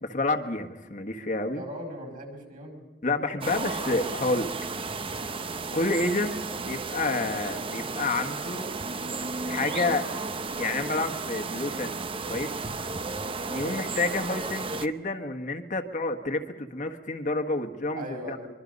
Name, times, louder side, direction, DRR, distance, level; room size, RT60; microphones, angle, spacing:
voice 1, 0.0-1.6 3.0-4.5 5.7-6.3 6.6-8.7 9.4-10.0 10.6-12.0 12.3-12.5 13.5-18.4, left 2 dB, 45° left, 5 dB, 1.5 m, -29 dB
voice 2, 1.5-2.8 13.5-13.8 17.9-18.5, equal, 45° right, 2 dB, 5.3 m, -39 dB
sound 1, 3.4-14.9, right 3 dB, 30° right, 0.8 m, -33 dB
24.5 x 23.5 x 5.4 m, 1.2 s
head